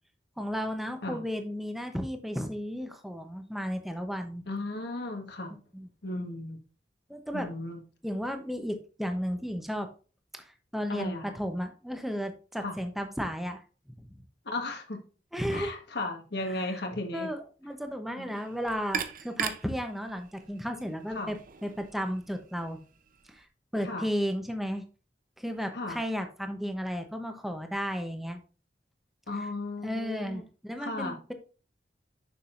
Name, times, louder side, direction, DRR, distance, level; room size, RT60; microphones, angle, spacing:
voice 1, 0.4-4.4 5.7-5.9 7.1-7.5 8.0-9.9 10.3-13.6 14.0-14.1 15.3-15.7 16.7-16.8 17.1-22.8 23.3-23.5 23.7-24.8 25.4-28.4 29.8-31.3, equal, ahead, 6 dB, 0.8 m, -34 dB
voice 2, 4.5-5.5 6.0-6.6 7.3-7.8 10.9-11.3 12.6-12.8 14.4-15.0 15.5-17.3 18.2-18.3 21.1-21.3 23.8-24.1 25.7-26.0 29.3-30.4 30.8-31.2, left 2 dB, 65° left, 3 dB, 1.4 m, -35 dB
sound 1, 18.3-23.5, right 7 dB, 50° right, 0.6 m, -40 dB
6.8 x 6.1 x 2.5 m, 0.36 s
head